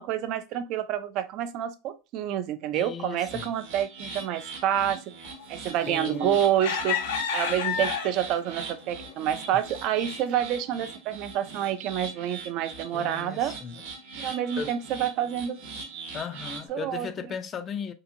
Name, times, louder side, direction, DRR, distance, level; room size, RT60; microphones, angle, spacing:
voice 1, 0.0-5.0 5.5-7.0 7.3-13.5 14.2-15.6 16.7-17.1, right 10 dB, 50° right, 0.3 m, -28 dB
voice 2, 2.7-3.5 5.9-6.4 12.9-13.8 14.6-14.7 16.1-17.9, left 6 dB, 30° left, 0.3 m, -36 dB
sound 1, 3.1-16.7, right 4 dB, 75° right, 0.8 m, -41 dB
sound 2, 5.8-6.2 6.6-8.4 9.0-9.1 9.6-9.8, left 7 dB, 90° left, 0.5 m, -29 dB
2.8 x 2.5 x 2.5 m
supercardioid pair, 140°, 0 cm